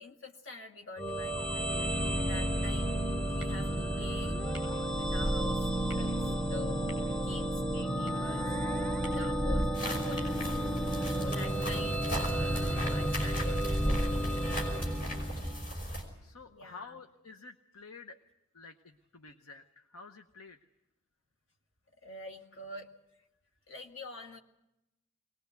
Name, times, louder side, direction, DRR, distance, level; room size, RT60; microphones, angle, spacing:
voice 1, 0.0-1.9 2.2-4.4 4.9-6.8 7.1-8.6 9.0-10.6 11.0-14.5 14.7-15.2 16.4-17.0 22.0-22.9 23.7-24.4, left 2 dB, 60° left, 4 dB, 2.0 m, -46 dB
sound 1, 1.0-15.7, right 1 dB, 5° left, 0.7 m, -32 dB
sound 2, 3.4-12.5, equal, 20° left, 7.5 m, -55 dB
sound 3, 9.7-16.0, equal, 40° left, 5.5 m, -38 dB
voice 2, 16.2-18.2 18.5-20.6, left 4 dB, 80° left, 7 dB, 0.9 m, -50 dB
22.0 x 19.5 x 8.1 m, 0.91 s
head